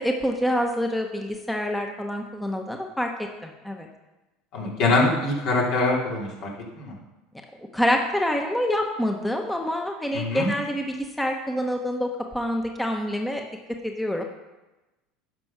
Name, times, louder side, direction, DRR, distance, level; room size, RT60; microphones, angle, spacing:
voice 1, 0.0-3.1 3.4-3.9 7.6-13.4 13.8-14.2, equal, 5° left, 2 dB, 1.1 m, -26 dB
voice 2, 4.5-6.3 6.7-6.9 10.1-10.5, left 2 dB, 60° left, -3 dB, 3.3 m, -23 dB
10.5 x 6.2 x 6.1 m, 1.1 s
supercardioid pair, 95°, 0 cm